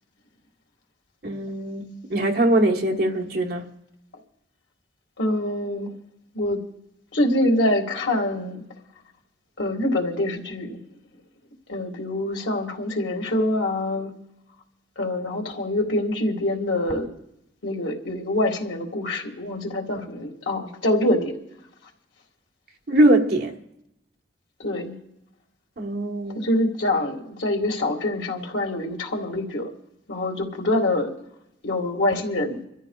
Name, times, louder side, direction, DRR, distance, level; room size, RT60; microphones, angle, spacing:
voice 1, 1.2-3.7 22.9-23.5 25.8-26.5, right 1 dB, 55° right, 1.4 m, -22 dB
voice 2, 5.2-5.9 6.3-6.6 7.1-8.6 9.6-10.8 11.7-14.1 15.0-17.1 17.6-21.4 24.6-24.9 26.3-29.7 30.1-31.1 31.6-32.6, left 1 dB, 85° left, 2.1 m, -25 dB
27.5 x 13.5 x 2.4 m
head